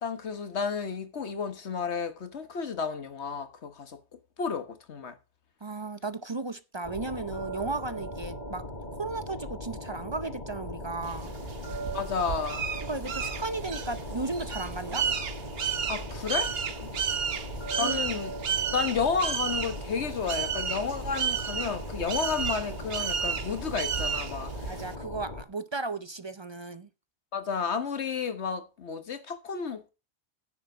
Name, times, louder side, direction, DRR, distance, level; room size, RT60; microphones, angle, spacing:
voice 1, 0.0-4.0 4.4-5.2 11.9-12.7 15.9-16.5 17.8-18.3 18.7-24.8 27.3-29.9, left 6 dB, 90° left, 1.6 m, -32 dB
voice 2, 5.6-8.6 8.9-11.3 12.8-15.1 17.8-18.0 24.7-26.9, right 3 dB, 30° right, 0.6 m, -35 dB
sound 1, 6.8-25.4, left 2 dB, 40° left, 2.0 m, -40 dB
sound 2, 7.3-10.4 11.6-15.1 17.6-20.7, right 6 dB, 60° left, 3.0 m, -44 dB
sound 3, 11.0-25.0, right 7 dB, 65° right, 1.1 m, -33 dB
9.8 x 7.5 x 6.0 m
omnidirectional pair, 1.1 m